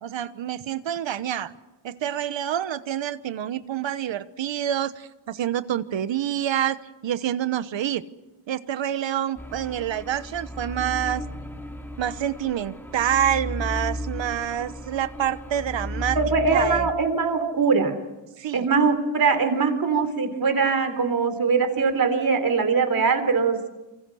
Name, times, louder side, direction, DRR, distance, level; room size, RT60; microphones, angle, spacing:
voice 1, 0.0-1.5 1.8-8.0 8.5-11.2 12.0-16.2 16.5-16.9 18.4-18.7, right 10 dB, 85° right, 13 dB, 1.2 m, -27 dB
sound 1, 9.4-16.9, equal, 5° left, 2.3 m, -34 dB
voice 2, 16.2-17.9 18.5-23.7, right 5 dB, 50° right, 8 dB, 3.7 m, -22 dB
27.5 x 25.0 x 6.4 m, 1.0 s
wide cardioid pair, 135°, 44 cm